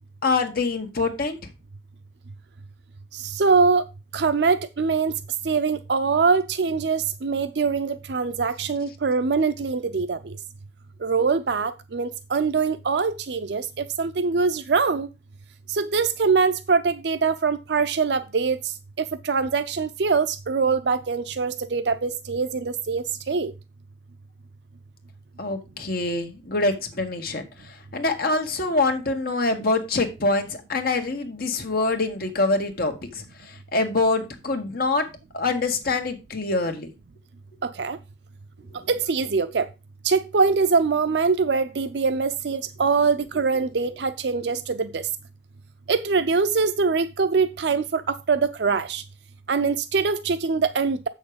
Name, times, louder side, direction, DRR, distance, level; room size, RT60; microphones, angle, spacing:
voice 1, 0.2-1.4 25.4-27.4 27.9-35.1 35.3-36.9, left 3 dB, 55° left, 1.7 m, -25 dB
voice 2, 3.1-3.8 4.1-5.1 5.4-10.3 11.0-15.1 15.7-18.7 19.2-23.5 37.6-38.0 38.9-39.7 40.0-45.1 45.9-49.0 49.5-51.1, right 4 dB, 70° right, 0.5 m, -23 dB
7.8 x 6.5 x 5.1 m
head